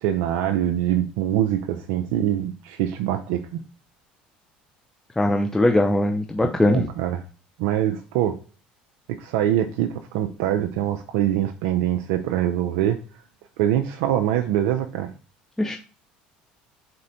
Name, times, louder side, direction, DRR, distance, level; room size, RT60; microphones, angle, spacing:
voice 1, 0.0-3.6 6.4-7.2 7.6-8.4 9.1-13.0 13.6-15.1, right 11 dB, 75° right, 5 dB, 0.4 m, -24 dB
voice 2, 5.2-6.9 15.6-15.8, left 1 dB, 10° left, 3 dB, 0.5 m, -20 dB
4.2 x 2.6 x 4.2 m, 0.37 s
hypercardioid pair, 75°, 4 cm